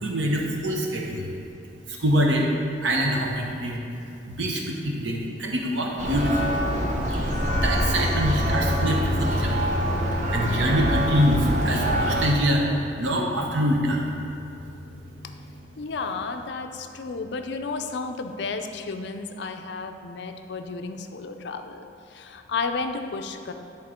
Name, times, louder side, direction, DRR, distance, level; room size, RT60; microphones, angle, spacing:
voice 1, 0.0-1.3 1.9-2.5 2.8-3.8 4.3-6.6 7.5-9.7 10.0-12.7 13.0-14.0, equal, 75° right, 0 dB, 0.8 m, -25 dB
Church bell, 6.0-12.3, equal, 40° right, 0.9 m, -25 dB
sound 1, 6.8-15.6, left 2 dB, 35° left, 0.9 m, -32 dB
voice 2, 14.9-15.4 15.8-23.5, left 4 dB, 65° left, 6 dB, 0.5 m, -33 dB
11.0 x 3.6 x 4.3 m, 2.7 s
head